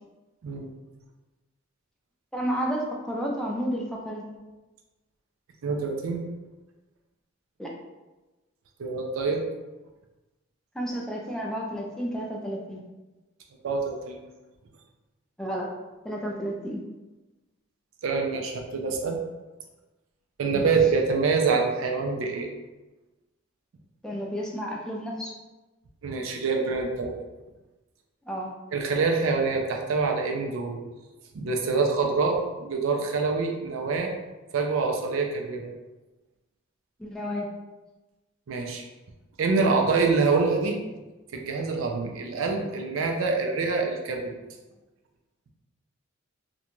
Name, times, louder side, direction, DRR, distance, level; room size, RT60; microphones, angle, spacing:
voice 1, 2.3-4.2 7.6-7.7 10.7-12.8 15.4-15.7 16.0-16.8 20.5-20.7 24.0-25.3 28.3-28.5 37.0-37.5, equal, 5° left, -2 dB, 0.3 m, -31 dB
voice 2, 5.6-6.2 8.8-9.4 13.6-14.2 18.0-19.2 20.4-22.5 26.0-27.2 28.7-30.8 31.3-34.1 34.5-35.7 38.5-38.8 39.4-40.8 41.3-44.3, right 4 dB, 75° right, 2 dB, 0.4 m, -25 dB
2.5 x 2.2 x 2.9 m, 1.1 s
head